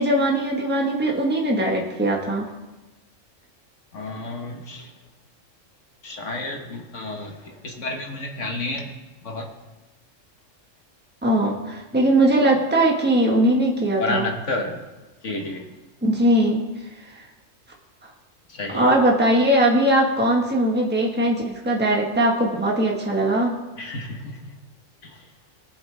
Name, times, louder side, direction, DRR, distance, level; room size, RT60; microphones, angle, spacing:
voice 1, 0.0-2.5 11.2-14.3 16.0-16.6 18.7-23.5, right 1 dB, 10° right, -1 dB, 1.5 m, -20 dB
voice 2, 3.9-4.9 6.0-8.9 9.2-9.5 12.4-12.5 14.0-14.8 15.2-15.7 18.5-18.9 23.8-24.5 25.0-25.1, left 2 dB, 70° left, 2 dB, 1.8 m, -30 dB
19.5 x 8.2 x 3.5 m, 1.1 s
omnidirectional pair, 1.3 m